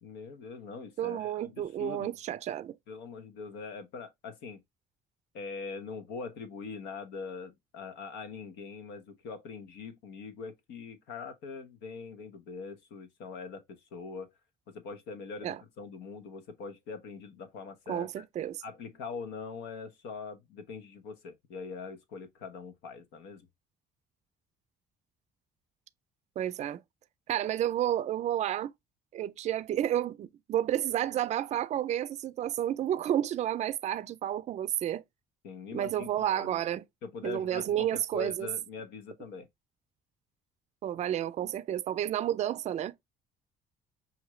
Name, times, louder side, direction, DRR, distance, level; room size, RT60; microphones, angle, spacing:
voice 1, 0.0-2.1 2.9-4.6 5.3-14.3 14.7-18.2 18.6-23.5 35.4-36.6 37.0-39.5, left 5 dB, 90° left, 1.0 m, -42 dB
voice 2, 1.0-2.8 15.4-15.6 17.9-18.6 26.4-26.8 27.3-28.7 29.1-35.0 35.7-36.8 37.2-38.5 40.8-43.0, right 11 dB, 45° right, 0.4 m, -31 dB
5.7 x 2.7 x 3.1 m
cardioid pair, 110°, 17 cm